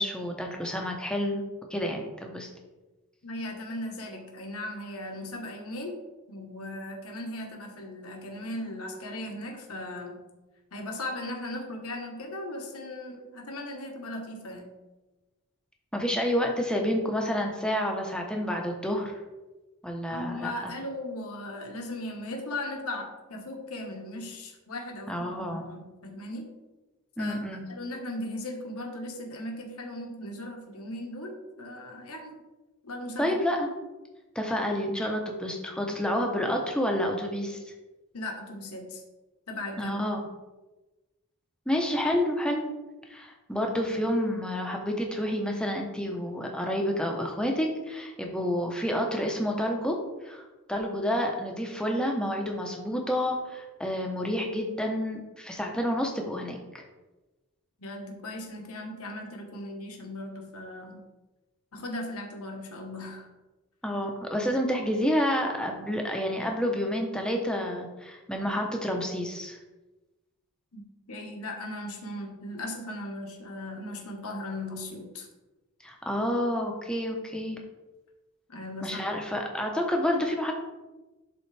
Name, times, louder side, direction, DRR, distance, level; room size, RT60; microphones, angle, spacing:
voice 1, 0.0-1.4 1.7-2.5 15.9-19.2 19.8-20.7 25.1-25.6 27.2-27.6 33.2-33.7 34.3-37.6 39.8-40.3 41.7-42.7 43.1-50.0 50.2-56.8 63.8-69.6 75.8-77.6 78.8-80.5, equal, 5° left, 1 dB, 0.8 m, -29 dB
voice 2, 3.2-6.0 6.3-10.2 10.7-14.7 20.1-26.5 27.2-27.4 27.7-32.4 32.8-33.4 38.1-39.0 39.5-40.0 57.8-61.0 61.7-63.3 70.7-75.3 78.5-79.0, left 1 dB, 80° left, 2 dB, 1.3 m, -37 dB
11.5 x 3.9 x 3.3 m, 1.1 s
head